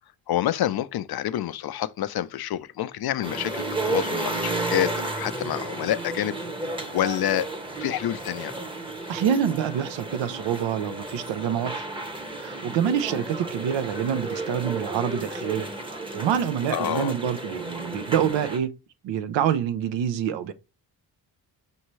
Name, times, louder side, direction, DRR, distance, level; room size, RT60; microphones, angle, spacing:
voice 1, 0.3-6.4 6.9-7.5 7.8-8.5 16.7-17.1, left 12 dB, 60° left, 0.5 m, -27 dB
sound 1, 3.2-18.6, right 2 dB, 10° right, 0.8 m, -33 dB
voice 2, 9.1-11.9 12.4-15.7 16.1-18.7 19.0-20.5, right 9 dB, 85° right, 0.6 m, -26 dB
5.4 x 2.7 x 3.0 m
cardioid pair, 70°, 43 cm